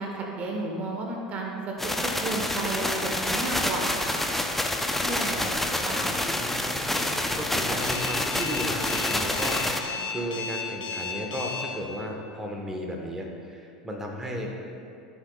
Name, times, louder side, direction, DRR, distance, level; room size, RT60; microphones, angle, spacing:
voice 1, 0.0-4.2 5.0-5.4 5.8-6.2 9.9-10.2, right 2 dB, 40° right, 0 dB, 1.2 m, -33 dB
sound 1, 1.8-9.8, left 1 dB, 5° left, 0.7 m, -28 dB
voice 2, 5.9-14.5, equal, 15° right, 0 dB, 1.3 m, -35 dB
Alarm, 7.8-11.6, left 6 dB, 55° left, 1.7 m, -33 dB
14.0 x 6.4 x 2.4 m, 2.6 s
hypercardioid pair, 80°, 4 cm